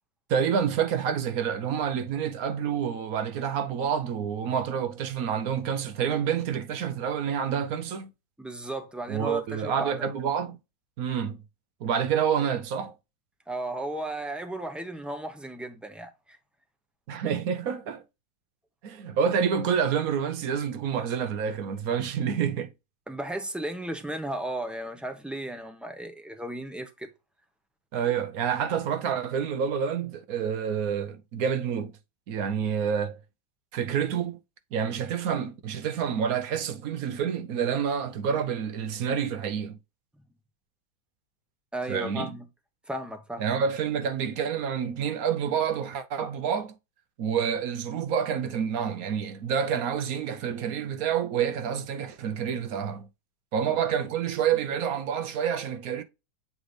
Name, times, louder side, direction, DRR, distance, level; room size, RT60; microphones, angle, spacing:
voice 1, 0.3-8.1 9.1-10.6 11.0-11.4 11.8-12.9 17.1-18.0 18.8-22.7 27.9-31.9 32.3-33.2 33.7-34.4 34.7-39.8 41.9-42.3 43.4-46.7 47.2-53.1 53.5-56.0, right 7 dB, 65° right, 1.1 m, -28 dB
voice 2, 8.4-10.1 13.5-16.4 23.1-27.1 41.7-42.5 42.9-43.4, right 1 dB, ahead, 0.8 m, -35 dB
7.9 x 3.9 x 3.2 m
omnidirectional pair, 1.7 m